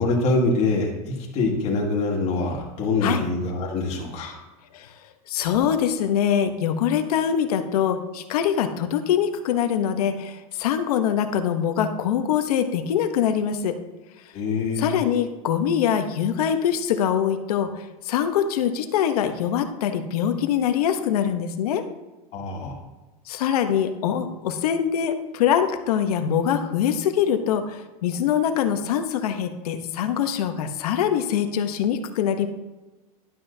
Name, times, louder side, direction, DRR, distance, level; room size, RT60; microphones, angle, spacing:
voice 1, 0.0-4.4 14.3-15.0 22.3-22.8, left 3 dB, 35° left, -2 dB, 2.0 m, -24 dB
voice 2, 5.3-13.8 14.8-21.8 23.3-32.5, left 9 dB, 80° left, 8 dB, 0.9 m, -23 dB
11.5 x 5.6 x 2.7 m, 1.1 s
supercardioid pair, 150°, 19 cm